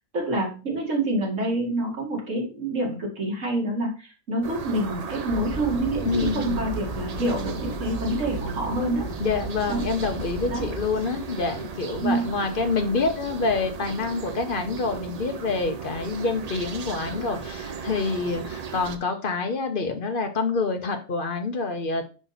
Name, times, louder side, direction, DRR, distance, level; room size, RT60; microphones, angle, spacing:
voice 1, 0.1-9.1 9.7-9.8 10.5-10.7 12.0-12.3, right 1 dB, 70° right, -2 dB, 2.5 m, -27 dB
sound 1, 4.4-19.0, right 6 dB, 45° right, 0.5 m, -36 dB
sound 2, 5.3-10.9, equal, 60° left, 1.8 m, -35 dB
voice 2, 6.0-6.7 9.2-22.1, left 4 dB, 45° left, 6 dB, 1.1 m, -27 dB
5.3 x 5.1 x 4.1 m, 0.34 s
omnidirectional pair, 1.4 m